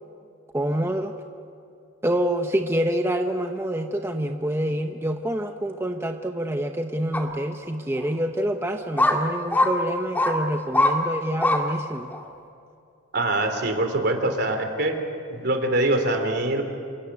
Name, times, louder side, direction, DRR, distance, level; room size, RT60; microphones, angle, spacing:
voice 1, 0.5-1.1 2.0-12.1, right 1 dB, 15° right, 4 dB, 0.8 m, -27 dB
sound 1, 7.1-7.2 8.0-8.1 9.0-9.2 9.5-9.7 10.2-10.3 10.7-10.9 11.4-11.6 12.1-12.2, left 2 dB, 10° left, 2.1 m, -20 dB
voice 2, 13.1-15.0 15.3-16.6, right 2 dB, 55° right, 5 dB, 3.2 m, -23 dB
27.5 x 16.5 x 9.7 m, 2.6 s
head